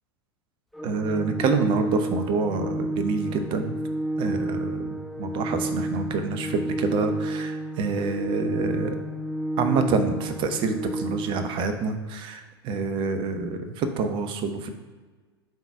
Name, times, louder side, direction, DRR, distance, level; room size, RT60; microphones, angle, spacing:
Organ, 0.7-11.7, right 1 dB, ahead, 0.3 m, -31 dB
voice 1, 0.8-3.8 4.2-8.9 9.6-14.7, right 4 dB, 40° right, 7 dB, 0.8 m, -27 dB
4.5 x 4.0 x 5.7 m, 1.4 s
figure-of-eight pair, 85°, 14 cm